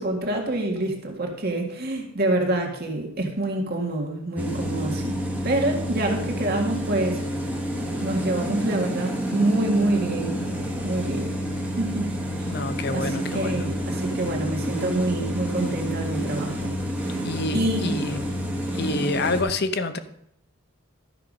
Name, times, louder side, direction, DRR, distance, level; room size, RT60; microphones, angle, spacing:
voice 1, 0.0-7.2 8.0-10.4 10.8-11.3 11.8-12.1 12.4-12.5 12.9-16.7 17.5-18.0, right 1 dB, 45° right, 2 dB, 1.8 m, -26 dB
sound 1, 4.4-19.4, equal, 5° right, 1.3 m, -29 dB
voice 2, 12.5-13.7 17.2-18.2 18.7-20.0, left 3 dB, 50° left, 11 dB, 0.7 m, -27 dB
12.5 x 5.8 x 5.2 m, 0.74 s
head